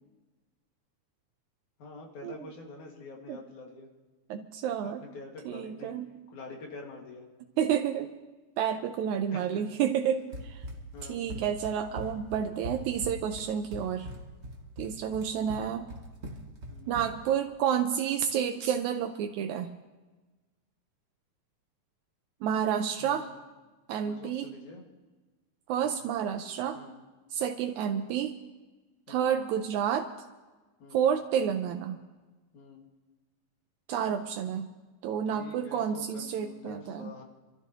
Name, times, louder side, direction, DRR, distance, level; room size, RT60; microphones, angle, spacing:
voice 1, 1.8-3.9 4.8-6.0 6.3-7.3 9.3-9.6 10.9-11.3 12.9-13.1 16.7-16.9 23.0-23.3 24.1-24.8 25.8-26.0 26.7-27.0 29.1-29.3 30.8-31.1 32.5-32.8 35.3-37.2, left 3 dB, 80° left, 0 dB, 3.4 m, -46 dB
voice 2, 4.3-5.0 5.5-6.1 7.6-8.1 8.6-10.6 11.1-14.1 14.8-15.9 16.9-19.7 22.4-23.3 23.9-24.5 25.7-26.8 27.3-28.4 29.1-30.1 30.9-32.0 33.9-34.7 35.0-37.1, right 8 dB, 80° right, 6 dB, 2.0 m, -30 dB
Run, 10.3-17.4, equal, 55° right, 0.7 m, -41 dB
26.5 x 13.5 x 2.9 m, 1.2 s
omnidirectional pair, 3.4 m